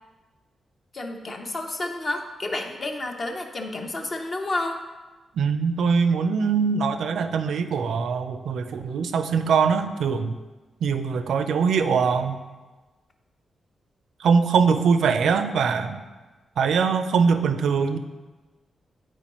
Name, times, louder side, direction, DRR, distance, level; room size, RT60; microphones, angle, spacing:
voice 1, 0.9-4.8, left 2 dB, 30° left, 3 dB, 0.6 m, -30 dB
voice 2, 5.3-10.3 10.8-12.4 14.2-16.0 16.6-18.0, right 5 dB, 80° right, 9 dB, 0.5 m, -22 dB
9.8 x 4.5 x 3.0 m, 1.2 s
wide cardioid pair, 170°, 0 cm